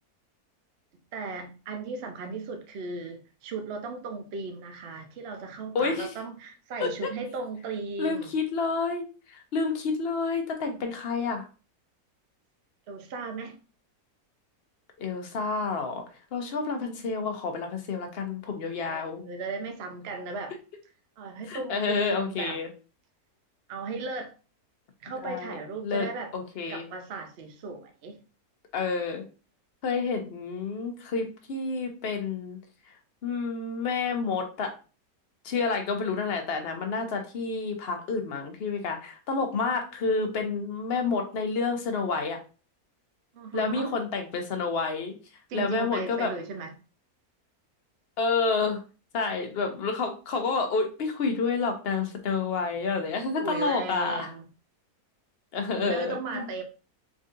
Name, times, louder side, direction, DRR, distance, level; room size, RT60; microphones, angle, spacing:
voice 1, 1.1-8.3 12.9-13.5 18.9-20.5 21.2-22.6 23.7-24.3 25.0-26.3 26.7-28.2 43.3-43.9 45.5-46.7 53.4-54.4 55.7-56.6, right 3 dB, 60° right, 0.7 m, -36 dB
voice 2, 5.7-6.1 6.8-7.1 8.0-11.5 15.0-16.0 16.3-19.2 21.5-22.7 25.2-26.1 26.3-26.8 28.7-29.2 29.8-32.6 33.2-34.7 35.4-42.4 43.5-45.2 45.5-46.3 48.2-48.8 49.1-54.3 55.5-56.5, left 4 dB, 50° left, 0.8 m, -29 dB
3.8 x 3.7 x 2.5 m
omnidirectional pair, 1.6 m